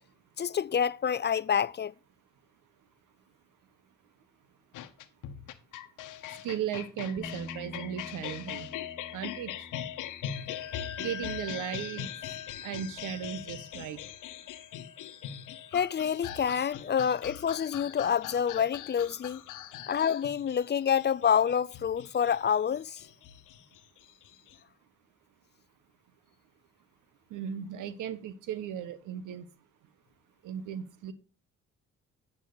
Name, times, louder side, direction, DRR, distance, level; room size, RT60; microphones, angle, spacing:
voice 1, 0.4-1.9 15.7-19.4 19.9-23.0, left 8 dB, 35° left, 0.4 m, -27 dB
sound 1, 4.7-24.6, left 11 dB, 90° left, 1.0 m, -41 dB
voice 2, 6.3-8.7 9.1-9.7 11.0-12.1 12.6-14.0 27.3-29.5 30.4-31.1, right 9 dB, 90° right, 1.2 m, -36 dB
Bass guitar, 7.2-13.4, left 1 dB, 15° right, 1.9 m, -49 dB
Wind instrument woodwind instrument, 10.4-17.8, left 8 dB, 35° right, 4.9 m, -49 dB
11.5 x 7.5 x 3.9 m
supercardioid pair, 60°, 30 cm